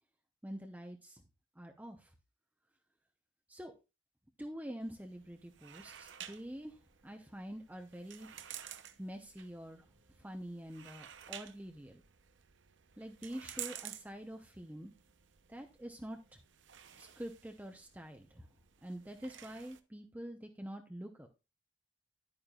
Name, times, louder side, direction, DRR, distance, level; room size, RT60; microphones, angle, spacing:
voice 1, 0.4-1.2 1.6-2.1 3.5-3.7 4.4-6.8 7.0-8.4 9.0-9.9 10.2-12.0 13.0-14.9 15.5-16.4 17.0-18.5 18.8-21.3, equal, 10° right, 4 dB, 0.8 m, -46 dB
sound 1, 4.8-19.8, right 11 dB, 70° right, 0.8 m, -52 dB
11.0 x 8.8 x 2.4 m, 0.28 s
head